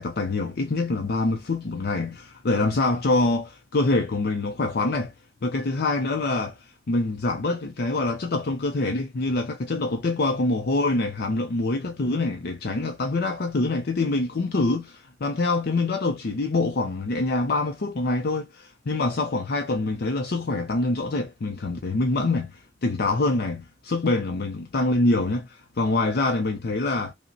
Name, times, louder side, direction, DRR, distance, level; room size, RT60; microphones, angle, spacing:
voice 1, 0.0-5.1 5.4-27.1, left 2 dB, 55° left, 0.6 m, -25 dB
5.3 x 2.1 x 2.6 m
head